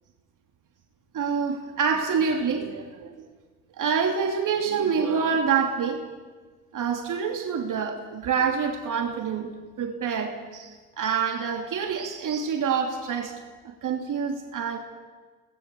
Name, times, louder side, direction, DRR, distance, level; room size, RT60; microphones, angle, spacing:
voice 1, 1.1-3.2 3.8-6.1 6.7-9.5 9.8-13.3 13.6-14.8, right 6 dB, 45° right, 3.0 m, -27 dB
30.0 x 19.5 x 7.1 m
hypercardioid pair, 65°, 43 cm